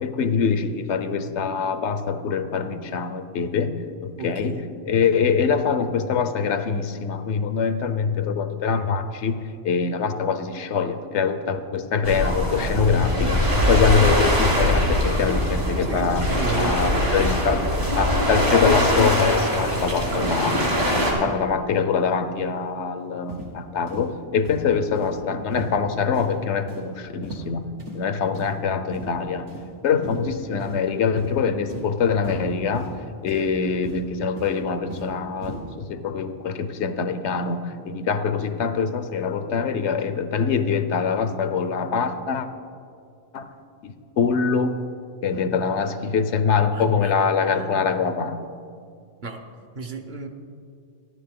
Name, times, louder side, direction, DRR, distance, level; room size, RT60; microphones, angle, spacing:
voice 1, 0.0-3.7 4.0-4.5 4.8-16.2 16.6-17.6 18.0-20.6 20.9-29.5 29.8-32.9 33.2-42.5 43.3-43.5 43.8-44.7 45.2-48.5, left 6 dB, 75° left, 10 dB, 1.0 m, -24 dB
voice 2, 4.2-4.7 15.9-17.4 21.1-21.3 29.9-30.1 46.7-47.1 47.4-47.9 49.2-49.4 49.7-50.3, right 3 dB, 45° right, 3 dB, 0.9 m, -34 dB
sound 1, 12.0-21.1, equal, 65° right, 3.1 m, -22 dB
sound 2, 23.3-23.5 23.9-24.0 24.4-24.6 25.0-25.1 25.5-25.7 26.1-26.3 26.7-26.9 27.2-27.5 27.8-28.0 28.3-28.5 28.9-29.1 29.5-29.6 30.0-30.2 30.6-30.8 31.2-31.3 31.7-31.8 32.2-32.4 32.7-32.9 33.3-33.5 33.8-34.0 34.4-35.1 35.4-35.6, right 2 dB, 90° right, 2.1 m, -36 dB
14.5 x 11.0 x 3.7 m, 2.3 s
omnidirectional pair, 1.2 m